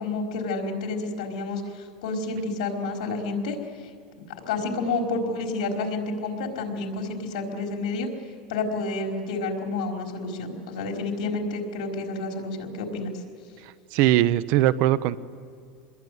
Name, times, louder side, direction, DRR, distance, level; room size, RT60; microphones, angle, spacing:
voice 1, 0.0-3.6 4.4-8.1 8.5-13.2, left 3 dB, 80° left, 2 dB, 4.8 m, -29 dB
voice 2, 13.6-15.2, right 14 dB, 60° right, 16 dB, 1.0 m, -21 dB
26.0 x 21.0 x 9.5 m, 2.3 s
supercardioid pair, 135°, 4 cm